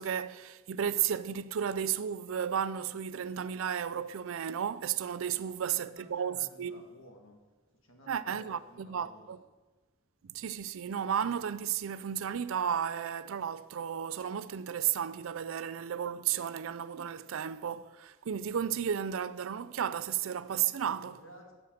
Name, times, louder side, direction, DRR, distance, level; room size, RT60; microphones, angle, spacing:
voice 1, 0.0-6.8 8.1-9.4 10.2-21.2, right 8 dB, 85° right, 0.4 m, -33 dB
voice 2, 5.3-7.4 7.8-9.3 20.7-21.5, equal, 85° left, 2.1 m, -55 dB
8.5 x 6.5 x 7.3 m
head